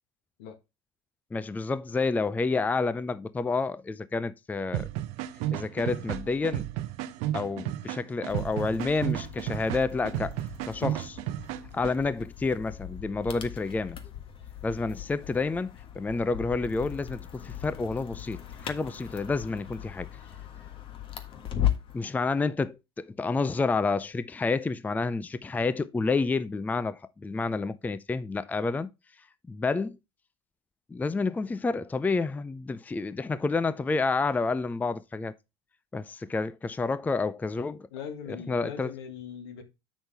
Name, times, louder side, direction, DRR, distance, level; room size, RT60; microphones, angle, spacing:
voice 1, 1.3-4.9 5.5-6.6 7.3-10.3 10.7-11.2 11.7-14.0 14.6-15.7 16.0-20.1 21.9-28.9 29.5-30.0 30.9-35.3 35.9-37.9 38.3-38.9, left 3 dB, 10° left, 0.5 m, -29 dB
sound 1, 4.7-11.9, right 13 dB, 60° right, 0.7 m, -33 dB
sound 2, 8.3-22.0, left 11 dB, 45° left, 1.4 m, -38 dB
voice 2, 37.9-39.6, left 7 dB, 75° left, 1.5 m, -40 dB
7.9 x 6.2 x 3.4 m
hypercardioid pair, 80°, 13 cm